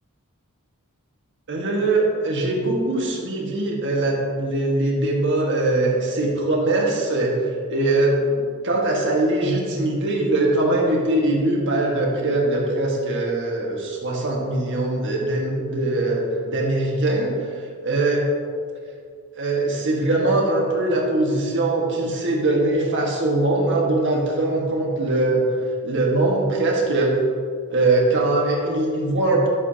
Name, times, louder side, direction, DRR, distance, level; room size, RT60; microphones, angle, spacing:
voice 1, 1.5-7.4 7.7-17.3 17.8-18.3 19.4-25.4 25.8-27.2 27.7-29.5, right 2 dB, 55° right, -2 dB, 1.7 m, -21 dB
11.5 x 7.1 x 2.9 m, 2.2 s
head